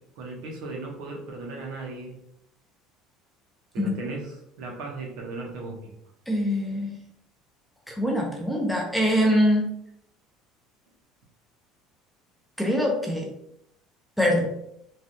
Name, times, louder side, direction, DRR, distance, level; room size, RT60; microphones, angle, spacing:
voice 1, 0.2-2.2 3.7-5.9, right 3 dB, 65° right, 1 dB, 0.7 m, -36 dB
voice 2, 6.3-7.0 7.9-9.7 12.6-13.3 14.2-14.5, equal, ahead, -1 dB, 0.4 m, -23 dB
3.2 x 2.3 x 2.6 m, 0.76 s
cardioid pair, 170°, 0 cm